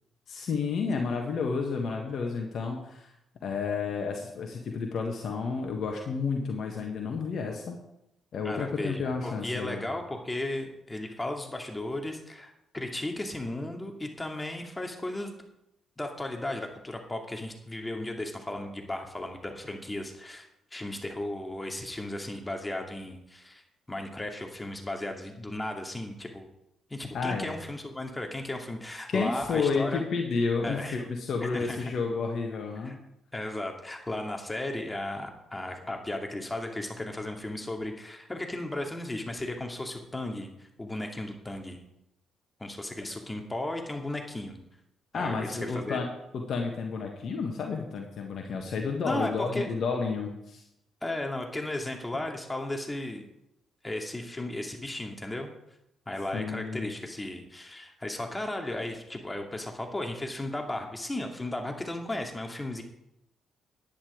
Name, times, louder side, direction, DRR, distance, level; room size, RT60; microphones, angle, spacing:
voice 1, 0.3-3.1 3.4-7.8 8.3-9.9 27.1-27.5 29.1-33.0 45.1-46.1 46.3-50.6 56.3-56.9, left 5 dB, 55° left, 2 dB, 1.6 m, -31 dB
voice 2, 8.4-15.3 16.0-23.6 23.9-26.5 26.9-30.0 30.6-31.0 31.5-31.9 32.8-33.0 33.3-41.8 42.6-44.6 45.1-46.0 49.0-49.7 51.0-53.2 53.8-55.5 56.1-62.8, left 1 dB, 15° left, 3 dB, 2.5 m, -35 dB
10.5 x 10.5 x 5.1 m, 0.82 s
hypercardioid pair, 45°, 0 cm